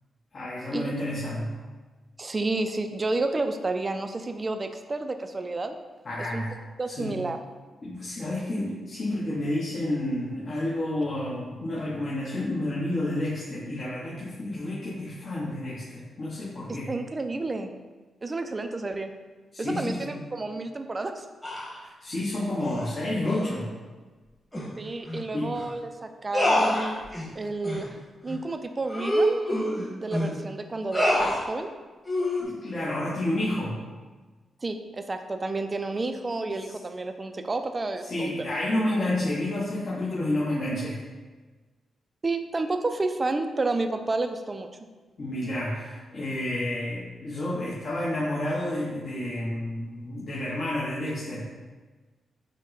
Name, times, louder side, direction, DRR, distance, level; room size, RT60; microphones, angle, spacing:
voice 1, 0.3-1.6 6.0-6.5 6.9-7.2 7.8-16.9 19.5-20.2 21.8-23.7 25.3-25.5 32.4-33.8 38.0-41.0 45.2-51.5, left 1 dB, 50° left, -7 dB, 0.9 m, -30 dB
voice 2, 2.2-5.7 6.3-6.4 6.8-7.4 16.7-17.7 18.2-19.1 19.6-21.3 24.8-27.0 27.4-28.0 28.2-29.4 30.0-31.7 34.6-38.3 42.2-44.7, right 2 dB, 30° right, 7 dB, 0.3 m, -30 dB
sound 1, 21.4-21.8 22.6-22.9 23.2-23.5 24.5-24.7 25.1-25.2 25.5-25.7 26.3-27.3 27.6-27.8 28.3-28.4 28.9-30.3 30.9-31.4 32.1-32.4, equal, 15° left, 1.1 m, -26 dB
5.1 x 2.1 x 3.9 m, 1.3 s
cardioid pair, 85°, 0 cm